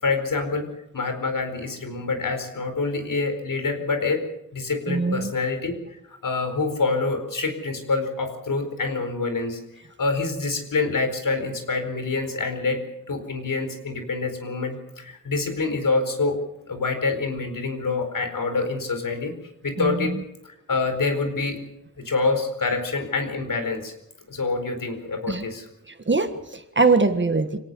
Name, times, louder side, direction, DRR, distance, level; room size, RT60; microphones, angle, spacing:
voice 1, 0.0-0.7 0.9-4.2 4.5-5.8 6.2-9.6 10.0-12.8 13.1-16.4 16.7-19.3 19.6-20.1 20.4-21.6 22.0-23.9 24.3-25.6, left 3 dB, 65° left, 7 dB, 4.6 m, -26 dB
voice 2, 4.9-5.3 19.8-20.2 25.3-25.4 25.9-27.6, right 3 dB, 30° right, 8 dB, 1.6 m, -22 dB
25.5 x 18.0 x 7.1 m, 0.84 s
wide cardioid pair, 135°, 35 cm